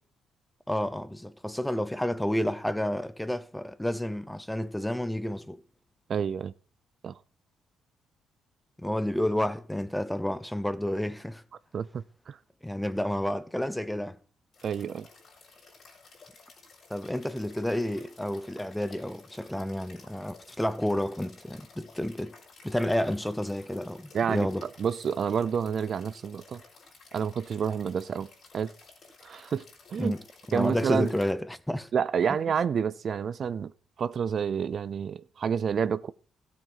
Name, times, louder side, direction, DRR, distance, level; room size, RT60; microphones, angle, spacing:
voice 1, 0.7-5.6 8.8-11.4 12.6-14.2 16.9-22.3 22.6-24.6 30.0-30.2 30.5-31.9, left 1 dB, 5° left, 0.8 m, -30 dB
voice 2, 6.1-6.5 7.0-7.2 11.7-12.4 14.6-15.1 24.1-26.6 27.1-28.7 29.2-29.6 29.9-30.2 30.5-31.1 31.9-33.7 34.0-36.1, right 7 dB, 55° right, 0.5 m, -29 dB
sound 1, 14.5-31.3, left 4 dB, 55° left, 4.9 m, -54 dB
14.0 x 7.7 x 5.6 m
cardioid pair, 90°, 0 cm